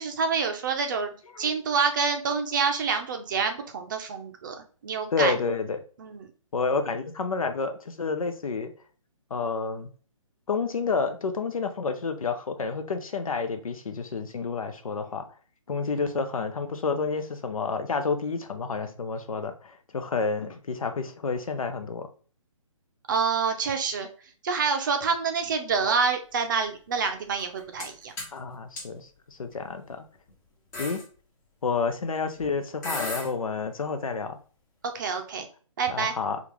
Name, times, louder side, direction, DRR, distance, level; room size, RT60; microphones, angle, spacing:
voice 1, 0.0-4.5 4.8-5.3 6.0-6.3 23.1-24.1 24.4-28.1 34.8-35.5 35.8-36.2, right 5 dB, 35° right, 5 dB, 0.5 m, -27 dB
voice 2, 5.1-5.8 6.5-8.7 9.3-9.9 10.5-15.2 15.7-22.1 28.3-30.0 30.8-31.0 31.6-34.4 35.9-36.4, left 4 dB, 85° left, 7 dB, 0.6 m, -29 dB
sound 1, 27.4-27.9 28.2-28.4 28.8-28.9 29.7-29.9 30.3-30.4 30.7-31.0 32.4-32.5 32.8-33.3, left 2 dB, 30° left, 1.2 m, -34 dB
3.6 x 2.4 x 3.0 m, 0.40 s
hypercardioid pair, 155°, 17 cm